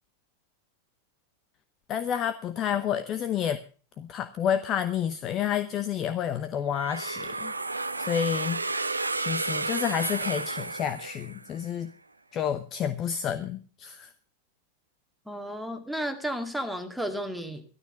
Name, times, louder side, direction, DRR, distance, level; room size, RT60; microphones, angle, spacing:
voice 1, 1.9-3.6 4.0-7.5 8.0-8.6 9.2-11.9 12.3-14.1, left 9 dB, 30° left, 11 dB, 0.8 m, -29 dB
sound 1, 6.7-11.6, right 3 dB, 80° right, 0.7 m, -32 dB
voice 2, 15.3-17.6, equal, ahead, 5 dB, 2.1 m, -33 dB
13.5 x 12.5 x 5.2 m, 0.39 s
figure-of-eight pair, 90°, 0 cm